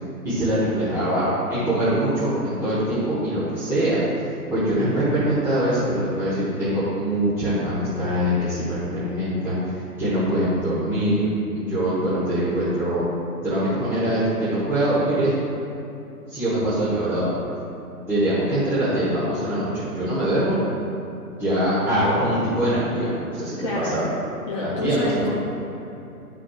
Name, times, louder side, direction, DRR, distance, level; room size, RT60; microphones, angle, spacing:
voice 1, 0.2-4.0 4.5-9.7 10.0-11.3 11.5-13.0 13.4-15.3 16.3-17.5 18.1-20.6 21.4-24.1 24.6-25.2, right 1 dB, 5° right, -13 dB, 1.2 m, -23 dB
voice 2, 23.6-24.0 24.5-25.4, left 2 dB, 20° left, -6 dB, 0.5 m, -27 dB
11.0 x 6.1 x 2.4 m, 2.8 s
hypercardioid pair, 135°, 47 cm